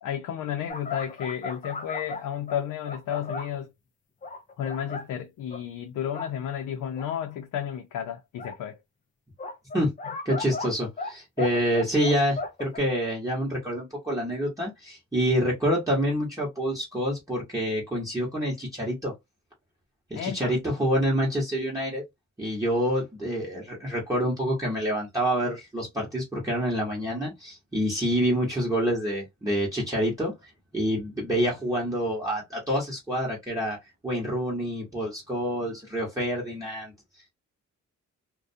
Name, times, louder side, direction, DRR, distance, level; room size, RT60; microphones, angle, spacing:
voice 1, 0.0-3.7 4.6-8.8 20.2-20.5, left 9 dB, 80° left, 0.6 m, -32 dB
sound 1, 0.7-3.6 4.2-5.1 5.5-5.6 6.0-6.3 7.0-7.1 8.4-8.6 9.4-11.1 11.4-12.8, left 3 dB, 25° left, 0.4 m, -36 dB
voice 2, 10.2-19.1 20.1-22.0 22.4-30.3 30.7-33.8 34.0-36.9, equal, 10° right, 0.9 m, -27 dB
2.3 x 2.2 x 2.5 m
cardioid pair, 120°, 31 cm